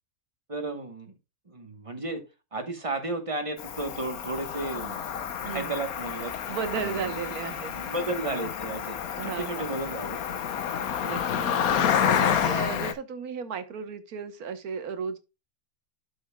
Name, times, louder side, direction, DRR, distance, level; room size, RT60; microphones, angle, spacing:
voice 1, 0.5-1.1 1.5-2.2 2.5-5.0 5.4-7.1 7.7-10.2, right 2 dB, 25° right, 1.1 m, -33 dB
Cricket, 3.6-12.9, left 8 dB, 80° left, 1.3 m, -29 dB
voice 2, 5.4-5.8 6.5-7.7 9.2-9.8 11.0-15.2, right 6 dB, 90° right, 1.5 m, -35 dB
12.0 x 5.6 x 2.2 m
omnidirectional pair, 1.5 m